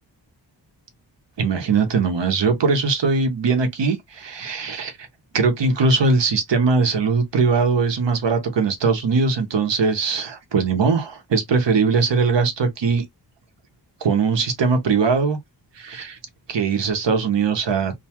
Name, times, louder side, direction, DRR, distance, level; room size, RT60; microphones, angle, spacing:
voice 1, 1.4-4.9 5.3-13.0 14.0-15.4 15.8-16.2 16.5-17.9, right 4 dB, 70° right, 0.9 m, -20 dB
2.7 x 2.3 x 2.8 m
wide cardioid pair, 120°, 44 cm